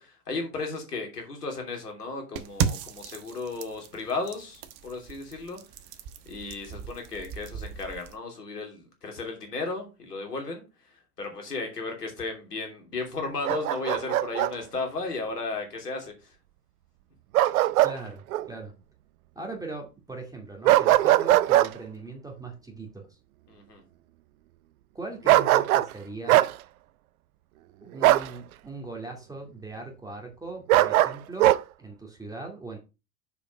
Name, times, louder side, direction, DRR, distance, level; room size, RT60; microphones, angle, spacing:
voice 1, 0.0-5.6 6.3-10.6 11.2-16.3 23.5-23.8, left 3 dB, 85° left, 3.0 m, -34 dB
sound 1, 2.4-8.2, right 8 dB, 50° right, 1.2 m, -35 dB
Bark, 13.5-14.5 17.3-18.0 18.3-18.5 20.6-21.7 25.3-25.9 26.3-26.5 28.0-28.3 30.7-31.6, right 15 dB, 65° right, 0.6 m, -20 dB
voice 2, 17.8-18.7 19.4-23.2 24.9-26.5 27.8-32.8, right 3 dB, 10° right, 2.4 m, -40 dB
6.9 x 5.2 x 5.1 m
hypercardioid pair, 90°, 46 cm